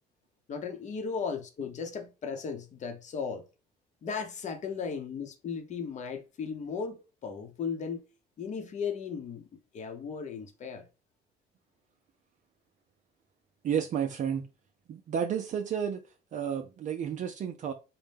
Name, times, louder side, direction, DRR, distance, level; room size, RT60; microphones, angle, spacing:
voice 1, 0.5-3.4 4.0-8.1 8.4-9.5 9.7-10.9, left 6 dB, 45° left, 0.8 m, -36 dB
voice 2, 13.6-14.5 14.9-16.0 16.3-17.7, right 8 dB, 45° right, 0.4 m, -31 dB
4.2 x 2.1 x 3.4 m
cardioid pair, 110°, 17 cm